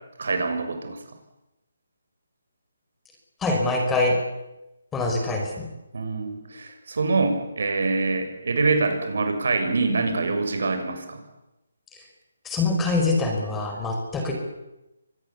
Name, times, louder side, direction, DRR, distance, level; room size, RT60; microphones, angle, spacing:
voice 1, 0.2-1.0 5.9-11.2, right 3 dB, 65° right, 6 dB, 6.7 m, -25 dB
voice 2, 3.4-4.1 4.9-5.7 12.4-14.3, left 2 dB, 10° left, 2 dB, 5.0 m, -24 dB
25.0 x 20.0 x 8.5 m, 0.95 s
hypercardioid pair, 155°, 0 cm